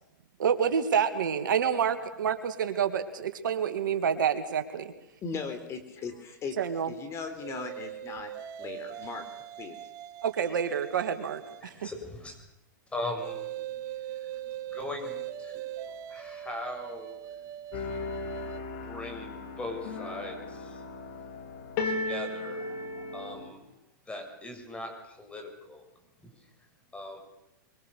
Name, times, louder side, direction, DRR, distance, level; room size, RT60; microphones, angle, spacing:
voice 1, 0.4-4.9 6.6-6.9 10.2-11.9, right 7 dB, 75° right, 9 dB, 2.5 m, -28 dB
voice 2, 5.2-6.5 6.9-8.3 8.6-9.3 9.6-9.8, left 5 dB, 25° left, 8 dB, 4.1 m, -38 dB
sound 1, 7.4-11.8 13.2-18.6, right 11 dB, 35° right, 1.5 m, -41 dB
voice 3, 11.6-12.4 12.9-13.4 13.7-13.8 14.2-15.6 16.1-17.2 17.7-18.4 18.8-20.8 21.8-23.6 24.1-25.8 26.2-26.3 26.9-27.2, left 1 dB, 10° left, 4 dB, 6.7 m, -40 dB
sound 2, 17.7-23.5, left 3 dB, 50° left, 5.0 m, -36 dB
24.5 x 24.0 x 6.8 m, 0.87 s
hypercardioid pair, 120°, 11 cm